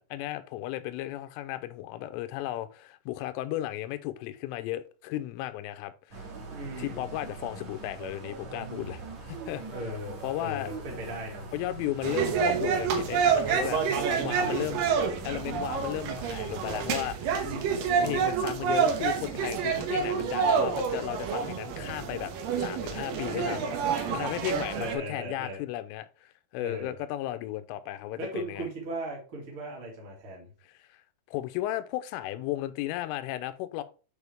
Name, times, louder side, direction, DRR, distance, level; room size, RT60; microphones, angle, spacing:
voice 1, 0.0-6.3 6.8-9.6 10.2-10.7 11.5-14.9 15.2-17.4 18.0-22.3 22.6-23.6 24.1-28.7 30.8-31.0 31.3-33.8, left 14 dB, 90° left, 3.2 m, -35 dB
sound 1, 6.1-16.9, right 4 dB, 50° right, 2.4 m, -42 dB
voice 2, 6.5-7.0 9.7-11.5 14.2-14.7 17.2-18.2 23.2-25.6 26.6-26.9 28.2-30.5, right 1 dB, 35° right, 2.4 m, -39 dB
sound 2, 12.0-25.0, right 6 dB, 80° right, 2.0 m, -28 dB
9.6 x 4.4 x 3.5 m
omnidirectional pair, 5.6 m